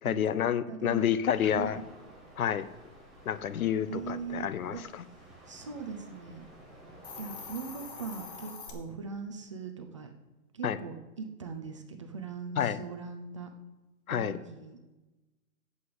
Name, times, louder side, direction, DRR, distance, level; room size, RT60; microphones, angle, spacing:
voice 1, 0.0-1.8 2.4-2.7 3.2-5.1 10.6-10.8 12.6-12.8 14.1-14.4, left 9 dB, 70° left, 15 dB, 0.9 m, -29 dB
voice 2, 0.7-1.1 1.4-1.7 3.9-4.8 5.5-6.4 7.2-10.1 10.5-13.5 14.1-14.8, right 5 dB, 20° right, 6 dB, 0.5 m, -40 dB
sound 1, 1.3-8.5, right 1 dB, ahead, 2.1 m, -53 dB
Hiss, 6.9-8.7, left 6 dB, 35° left, 1.8 m, -44 dB
8.4 x 7.9 x 7.9 m, 1.1 s
hypercardioid pair, 155°, 44 cm